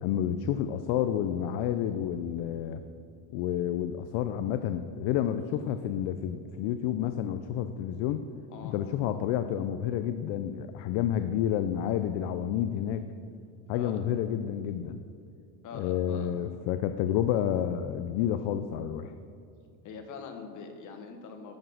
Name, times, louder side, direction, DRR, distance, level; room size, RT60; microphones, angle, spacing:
voice 1, 0.0-2.8 3.3-8.2 8.6-13.0 13.7-15.0 15.7-19.1, left 10 dB, 60° left, 9 dB, 0.6 m, -30 dB
voice 2, 15.6-16.3 19.8-21.6, left 5 dB, 40° left, 4 dB, 1.4 m, -43 dB
11.5 x 7.3 x 6.4 m, 2.3 s
cardioid pair, 155°, 47 cm